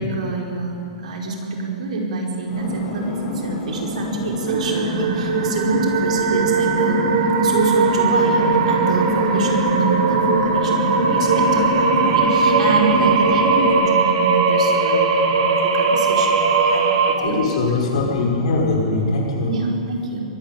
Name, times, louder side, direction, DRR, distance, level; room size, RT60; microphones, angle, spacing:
voice 1, 0.0-7.0 7.4-17.4 19.5-20.2, right 3 dB, 75° right, 0 dB, 4.8 m, -27 dB
sound 1, 2.5-13.7, left 1 dB, 35° left, 5.8 m, -25 dB
sound 2, 4.5-17.2, right 4 dB, 55° right, 2.3 m, -19 dB
voice 2, 17.2-19.6, left 3 dB, 65° left, -1 dB, 5.9 m, -21 dB
22.5 x 13.5 x 9.7 m, 2.7 s
hypercardioid pair, 170°, 4 cm